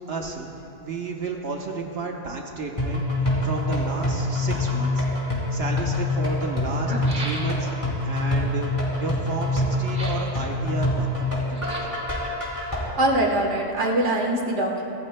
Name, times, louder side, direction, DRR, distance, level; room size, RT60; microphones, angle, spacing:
voice 1, 0.1-0.5 0.8-5.0 5.5-7.7 8.0-8.7 9.0-11.7, right 3 dB, 60° right, 1 dB, 1.2 m, -32 dB
sound 1, 2.8-12.8, left 1 dB, 25° left, 3.1 m, -25 dB
sound 2, 6.7-7.9 9.8-10.3 11.5-12.1 12.9-13.7 14.0-14.1, right 1 dB, 45° right, 1.6 m, -36 dB
voice 2, 13.0-14.8, right 1 dB, 85° right, 0 dB, 1.7 m, -23 dB
24.0 x 14.0 x 2.2 m, 3.0 s
omnidirectional pair, 1.2 m